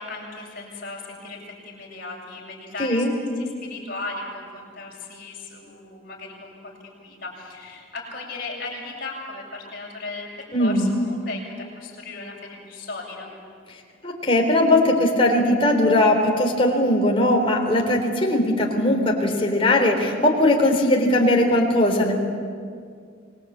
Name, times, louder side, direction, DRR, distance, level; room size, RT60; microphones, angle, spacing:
voice 1, 0.0-3.1 3.4-10.3 10.6-13.3, left 3 dB, 45° left, -3 dB, 7.5 m, -36 dB
voice 2, 2.8-3.1 10.5-10.9 14.0-22.1, left 1 dB, 25° left, 1 dB, 3.6 m, -19 dB
26.5 x 21.0 x 8.6 m, 2.2 s
head